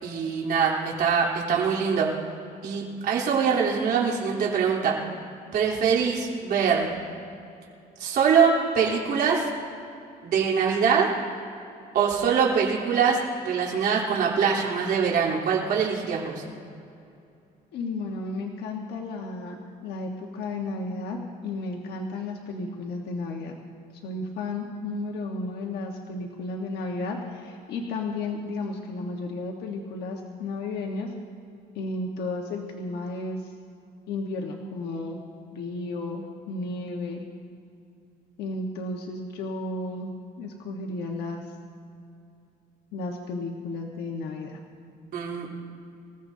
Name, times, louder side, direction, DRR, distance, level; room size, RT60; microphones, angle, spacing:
voice 1, 0.0-2.1 2.6-5.0 5.5-6.9 8.0-9.5 10.2-11.1 11.9-16.4 45.1-45.5, right 6 dB, 60° right, -5 dB, 3.6 m, -23 dB
voice 2, 17.7-23.6 24.0-31.1 31.7-33.5 34.1-35.2 35.5-37.2 38.4-40.1 40.4-41.5 42.9-44.6, left 2 dB, 75° left, 1 dB, 1.4 m, -33 dB
25.5 x 15.5 x 2.8 m, 2.6 s
cardioid pair, 110°, 17 cm